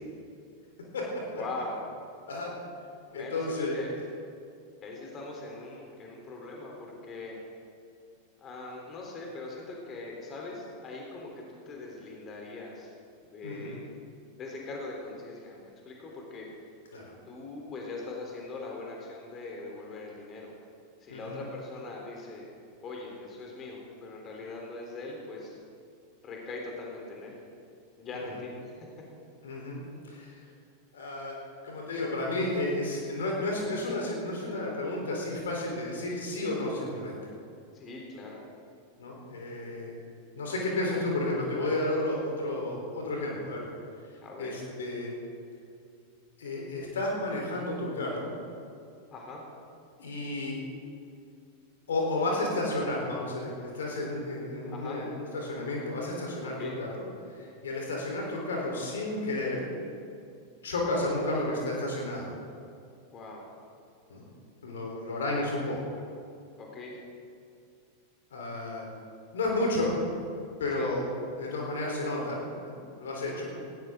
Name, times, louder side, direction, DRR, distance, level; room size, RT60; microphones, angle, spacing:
voice 1, 1.3-1.8 3.1-4.0 4.8-7.4 8.4-12.9 13.3-13.8 14.4-16.5 17.3-20.5 21.0-22.5 22.8-25.6 26.2-27.4 28.0-28.8 37.7-38.4 44.2-44.6 49.1-49.4 54.7-55.0 56.4-56.8 63.1-63.5 66.6-67.0 70.8-70.9 73.4-73.6, left 3 dB, 30° left, -1 dB, 3.5 m, -41 dB
voice 2, 3.1-3.8 13.4-13.8 16.9-17.1 21.1-21.4 28.3-28.4 29.4-29.8 30.1-30.4 30.9-37.2 39.0-39.9 40.3-43.7 44.4-45.1 46.4-48.3 50.0-50.6 51.9-56.9 57.3-59.6 60.6-62.3 64.1-64.2 64.6-65.8 68.3-68.9 69.3-69.9 70.6-71.0 71.4-73.5, left 2 dB, 65° left, -1 dB, 3.8 m, -32 dB
19.5 x 16.5 x 3.8 m, 2.4 s
figure-of-eight pair, 90°, 0 cm